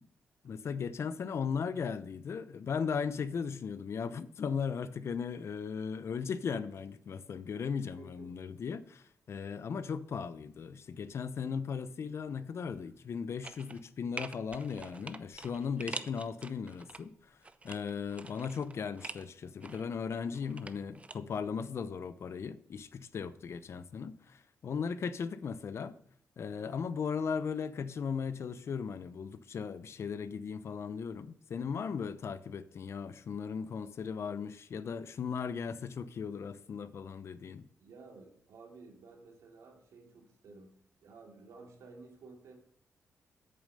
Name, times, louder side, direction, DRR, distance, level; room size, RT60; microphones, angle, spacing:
voice 1, 0.4-17.4 17.6-25.9 26.4-37.7, left 6 dB, 60° left, 0.7 m, -37 dB
voice 2, 8.0-8.5 12.8-12.9 15.8-16.1 37.8-40.7 41.0-42.6, right 3 dB, 90° right, 2.6 m, -54 dB
sound 1, 13.4-13.9 14.2-17.0 17.4-19.3 19.6-21.2 21.4-21.5, right 3 dB, 25° right, 0.7 m, -45 dB
8.8 x 7.3 x 6.7 m
cardioid pair, 100°, 5 cm